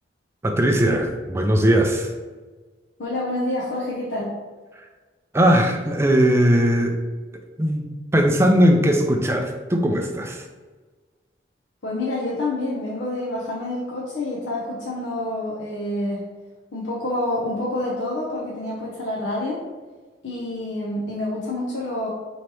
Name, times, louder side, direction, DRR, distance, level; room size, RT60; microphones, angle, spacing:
voice 1, 0.4-2.1 5.3-6.9 7.6-7.8 8.1-10.4, equal, 15° right, 3 dB, 0.4 m, -19 dB
voice 2, 3.0-4.3 11.8-16.2 16.7-19.6 20.2-22.1, left 1 dB, 70° left, -5 dB, 0.6 m, -27 dB
3.1 x 2.9 x 4.5 m, 1.3 s
head